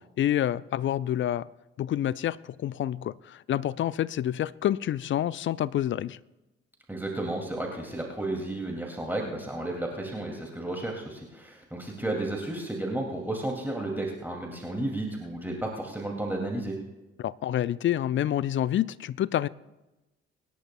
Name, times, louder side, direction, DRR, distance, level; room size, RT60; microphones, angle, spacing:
voice 1, 0.2-1.5 1.8-6.2 17.2-19.5, left 11 dB, 40° left, 0.4 m, -28 dB
voice 2, 6.9-16.7, right 1 dB, 5° right, 2.4 m, -33 dB
24.5 x 10.5 x 2.3 m
hypercardioid pair, 45°, 32 cm